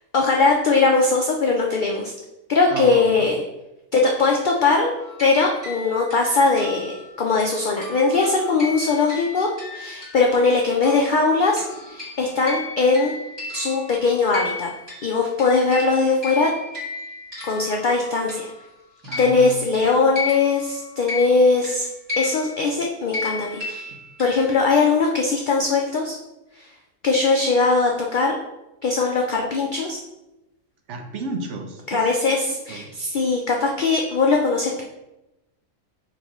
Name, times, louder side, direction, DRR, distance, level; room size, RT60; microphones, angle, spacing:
voice 1, 0.1-2.1 2.5-3.4 3.9-4.9 5.2-13.1 13.5-14.7 15.0-16.5 17.4-18.5 19.2-21.9 22.2-23.9 24.2-26.2 26.6-26.7 27.0-28.4 28.8-30.0 31.9-34.8, left 3 dB, 70° left, 0 dB, 0.4 m, -20 dB
voice 2, 2.7-3.0 19.1-19.6 23.9-24.0 30.9-32.1 32.7-32.9, right 2 dB, 65° right, 4 dB, 0.9 m, -32 dB
sound 1, 5.0-10.5 10.8-18.7 19.0-24.7, left 3 dB, 20° right, 1.6 m, -35 dB
5.3 x 2.8 x 3.0 m, 0.95 s
omnidirectional pair, 1.4 m